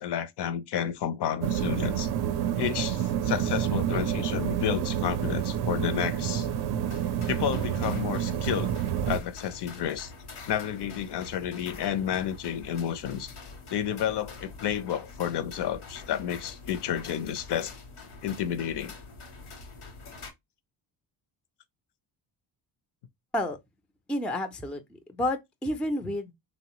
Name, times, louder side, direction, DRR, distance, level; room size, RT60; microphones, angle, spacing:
voice 1, 0.0-2.1 2.5-6.5 7.3-8.7 9.1-10.1 10.4-13.3 13.7-17.7 18.2-18.9, left 9 dB, 60° left, 0.5 m, -31 dB
sound 1, 1.4-9.2, right 10 dB, 55° right, 0.5 m, -28 dB
sound 2, 6.8-20.3, left 3 dB, 90° left, 0.9 m, -45 dB
voice 2, 24.1-26.3, left 1 dB, ahead, 0.3 m, -30 dB
3.1 x 2.0 x 2.8 m
cardioid pair, 80°, 47 cm